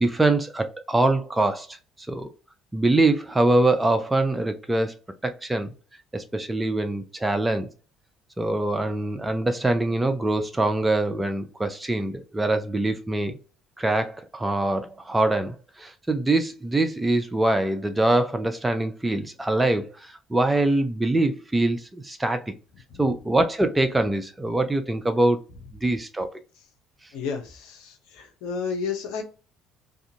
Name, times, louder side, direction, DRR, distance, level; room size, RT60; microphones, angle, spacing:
voice 1, 0.0-2.3 2.7-5.0 5.2-5.7 6.1-7.7 8.4-13.4 13.8-22.5 23.0-25.4 25.8-26.4, right 2 dB, 15° right, 0.4 m, -24 dB
voice 2, 27.1-29.2, left 5 dB, 75° left, 0.7 m, -32 dB
2.5 x 2.3 x 2.7 m
hypercardioid pair, 60°, 0 cm